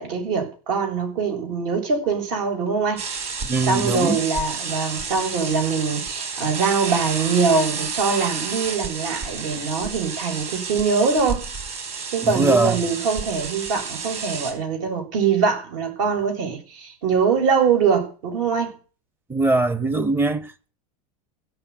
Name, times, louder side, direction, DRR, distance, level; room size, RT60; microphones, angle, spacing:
voice 1, 0.0-3.0 3.7-11.5 12.1-18.7, right 5 dB, 60° right, 7.4 m, -23 dB
sound 1, 3.0-14.5, right 5 dB, 35° right, 5.0 m, -31 dB
voice 2, 3.4-4.2 12.2-12.8 19.3-20.7, right 3 dB, 10° right, 1.0 m, -21 dB
16.5 x 7.2 x 8.5 m
supercardioid pair, 145°, 18 cm